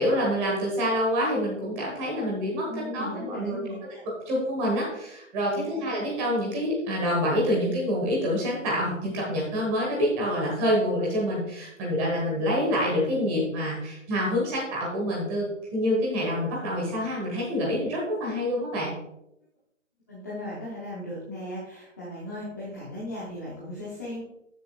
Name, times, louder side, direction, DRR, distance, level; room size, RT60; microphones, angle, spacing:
voice 1, 0.0-2.6 2.9-3.6 4.2-18.9, equal, 10° right, -4 dB, 1.3 m, -27 dB
voice 2, 2.7-4.0 5.5-5.8 20.1-24.2, left 1 dB, 15° left, -8 dB, 0.8 m, -37 dB
13.5 x 6.6 x 2.3 m, 0.83 s
hypercardioid pair, 170°, 39 cm